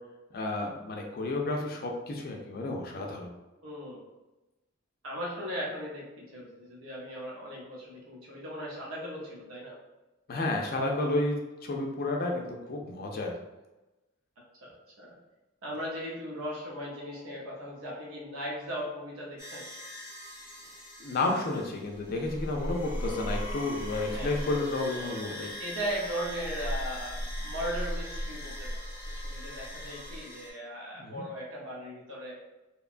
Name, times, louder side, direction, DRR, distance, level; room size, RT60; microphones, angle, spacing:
voice 1, 0.3-3.3 10.3-13.3 21.0-25.5 31.0-31.2, left 2 dB, 45° left, 1 dB, 0.4 m, -31 dB
voice 2, 3.6-4.0 5.0-9.8 14.6-15.2 15.6-19.7 24.1-24.4 25.6-28.9 29.2-32.4, equal, 75° right, -3 dB, 0.7 m, -38 dB
sound 1, 19.4-30.5, equal, 15° right, 0.7 m, -38 dB
2.9 x 2.1 x 2.4 m, 1.0 s
head